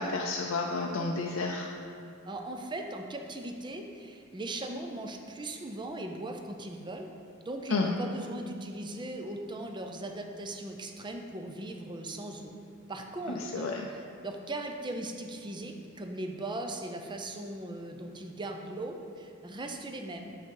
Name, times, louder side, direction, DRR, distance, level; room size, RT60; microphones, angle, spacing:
voice 1, 0.0-1.7 7.7-7.9 13.4-13.8, left 3 dB, 75° left, -1 dB, 0.5 m, -31 dB
voice 2, 2.3-7.1 7.4-12.5 12.9-20.4, right 1 dB, 20° right, 4 dB, 0.6 m, -39 dB
6.8 x 5.6 x 4.7 m, 2.4 s
head